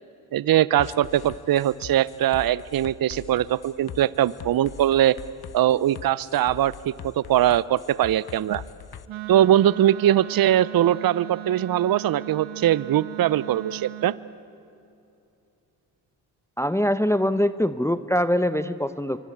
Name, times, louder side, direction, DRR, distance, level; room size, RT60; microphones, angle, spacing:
voice 1, 0.3-5.2 5.5-8.6 9.3-14.1, right 12 dB, 50° right, 19 dB, 0.7 m, -21 dB
sound 1, 0.8-9.1, left 8 dB, 50° left, 1.1 m, -42 dB
Wind instrument woodwind instrument, 9.1-14.2, right 18 dB, 80° right, 1.4 m, -38 dB
voice 2, 16.6-19.2, equal, 5° left, 12 dB, 0.9 m, -23 dB
27.5 x 24.0 x 8.6 m, 2.7 s
supercardioid pair, 55°, 47 cm